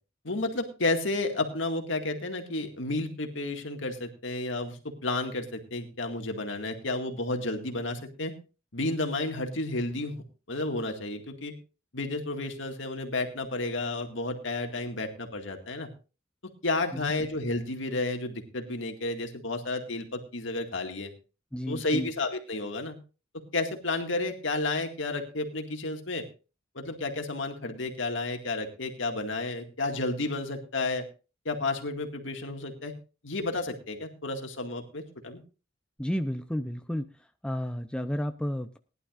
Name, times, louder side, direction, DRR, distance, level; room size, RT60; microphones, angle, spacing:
voice 1, 0.2-8.3 8.7-11.5 11.9-15.9 16.6-21.1 21.7-22.9 23.5-26.2 26.8-31.0 31.5-32.9 33.2-35.4, left 2 dB, 70° left, 4 dB, 2.0 m, -31 dB
voice 2, 16.9-17.3 21.5-22.1 36.0-37.1 37.4-38.8, equal, 5° left, 7 dB, 0.6 m, -32 dB
19.5 x 11.5 x 2.5 m, 0.32 s
head